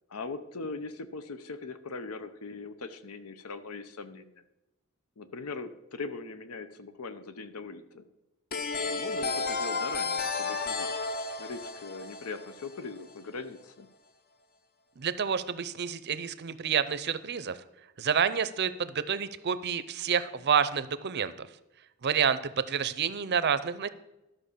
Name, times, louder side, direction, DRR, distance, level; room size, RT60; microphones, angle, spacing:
voice 1, 0.1-4.3 5.2-8.0 8.7-10.9 11.4-13.9, left 4 dB, 80° left, 11 dB, 0.8 m, -40 dB
sound 1, 8.5-13.1, left 4 dB, 40° left, 0.7 m, -32 dB
voice 2, 15.0-17.6 18.0-21.5 22.0-23.9, right 7 dB, 50° right, 14 dB, 0.6 m, -29 dB
12.5 x 5.9 x 6.7 m, 0.97 s
head